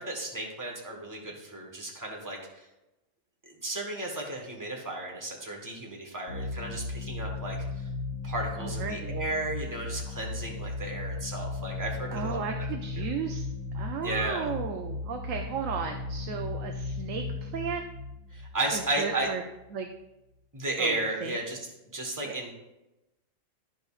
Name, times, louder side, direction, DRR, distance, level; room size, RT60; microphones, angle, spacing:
voice 1, 0.0-2.7 3.4-7.8 8.2-12.4 13.0-13.1 14.0-14.5 18.3-19.3 20.5-21.6 21.9-22.5, right 2 dB, 15° right, -1 dB, 1.3 m, -34 dB
sound 1, 6.3-19.6, left 3 dB, 75° left, 1.7 m, -36 dB
voice 2, 8.6-9.2 12.1-13.4 13.7-17.8 18.7-19.4 19.7-19.9 20.8-21.4 22.2-22.4, right 6 dB, 75° right, 4 dB, 1.0 m, -35 dB
13.5 x 5.2 x 2.4 m, 0.96 s
omnidirectional pair, 1.4 m